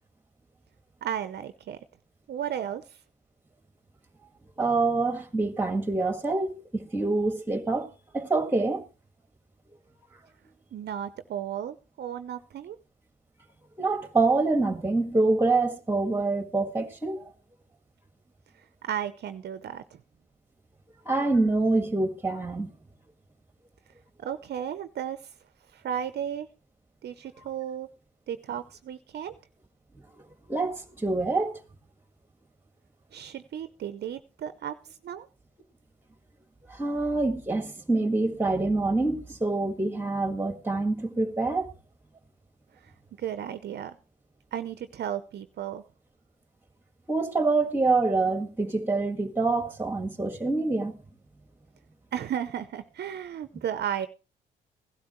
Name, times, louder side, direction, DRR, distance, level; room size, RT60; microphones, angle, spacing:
voice 1, 1.0-1.8 2.3-3.0 10.7-12.8 18.8-20.0 24.2-25.2 25.7-26.5 27.0-27.9 28.3-29.3 33.1-34.7 35.0-35.3 43.2-44.0 44.5-45.8 52.1-54.1, right 9 dB, 60° right, 0.7 m, -34 dB
voice 2, 4.6-8.8 13.8-17.2 21.0-22.7 30.5-31.6 36.7-41.6 47.1-51.0, right 3 dB, 10° right, 1.8 m, -26 dB
16.5 x 12.0 x 3.1 m
supercardioid pair, 70°, 19 cm